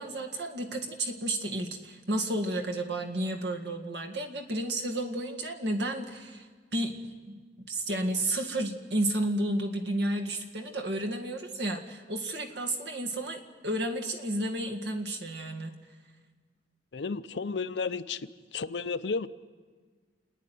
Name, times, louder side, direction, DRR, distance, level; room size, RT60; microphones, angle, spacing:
voice 1, 0.0-6.5 6.7-15.8, right 1 dB, 70° right, 2 dB, 2.0 m, -32 dB
voice 2, 16.9-18.2 18.5-19.3, left 4 dB, 75° left, 13 dB, 0.6 m, -32 dB
29.0 x 9.7 x 9.5 m, 1.5 s
head